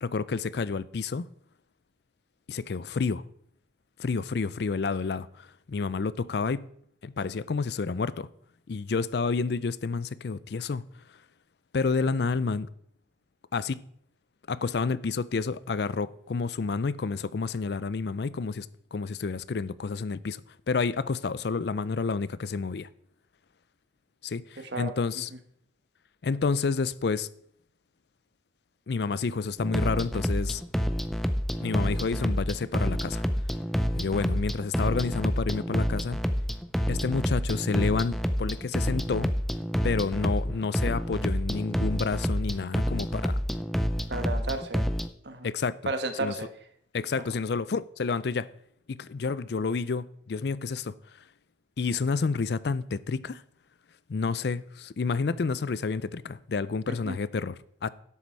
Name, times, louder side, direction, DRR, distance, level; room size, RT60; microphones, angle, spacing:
voice 1, 0.0-1.3 2.5-3.2 4.0-6.7 7.0-8.3 8.7-10.9 11.7-12.7 13.5-13.8 14.5-20.4 20.7-22.9 24.2-25.3 26.2-27.3 28.9-30.6 31.6-33.2 34.0-36.2 36.9-39.4 39.8-43.4 45.4-45.7 46.2-46.3 46.9-48.5 48.9-51.0 51.8-53.4 54.1-57.9, left 4 dB, 60° left, 0.4 m, -29 dB
sound 1, 29.6-45.1, equal, ahead, 0.4 m, -28 dB
voice 2, 44.1-44.9 45.2-45.5 45.9-46.5 56.9-57.2, right 2 dB, 65° right, 1.3 m, -32 dB
11.5 x 8.3 x 4.7 m
head